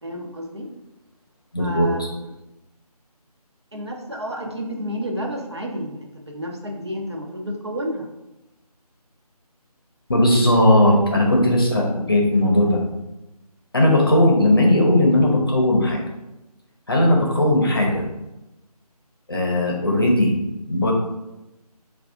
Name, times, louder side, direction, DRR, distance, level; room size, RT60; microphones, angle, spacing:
voice 1, 0.0-0.7 1.6-2.3 3.7-8.1, equal, 45° right, 0 dB, 0.6 m, -31 dB
voice 2, 1.5-2.1 10.1-12.8 13.7-16.0 16.9-18.0 19.3-20.3 20.7-20.9, left 1 dB, 35° left, -1 dB, 0.7 m, -17 dB
4.6 x 2.4 x 3.5 m, 0.97 s
figure-of-eight pair, 160°, 20 cm